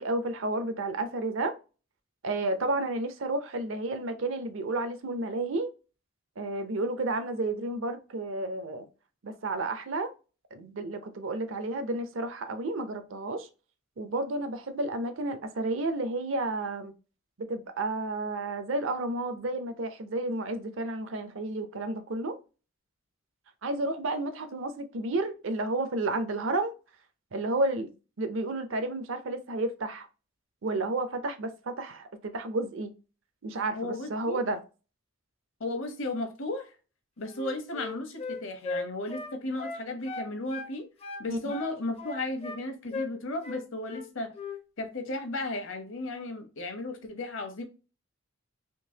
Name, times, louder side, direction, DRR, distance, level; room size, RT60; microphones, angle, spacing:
voice 1, 0.0-1.5 2.2-5.7 6.4-8.9 9.2-10.1 10.5-13.5 14.0-16.9 17.4-22.4 23.6-26.7 27.3-27.9 28.2-30.1 30.6-32.9 33.4-34.6 41.3-41.5, right 2 dB, 65° right, 0.6 m, -31 dB
voice 2, 33.7-34.4 35.6-36.7 37.2-40.9 41.2-44.3 44.8-47.6, left 2 dB, 65° left, 0.9 m, -35 dB
Wind instrument woodwind instrument, 37.3-40.7 41.0-42.6 42.9-43.1 43.4-44.1 44.3-44.6, left 4 dB, 30° left, 0.5 m, -37 dB
3.7 x 2.7 x 2.7 m
head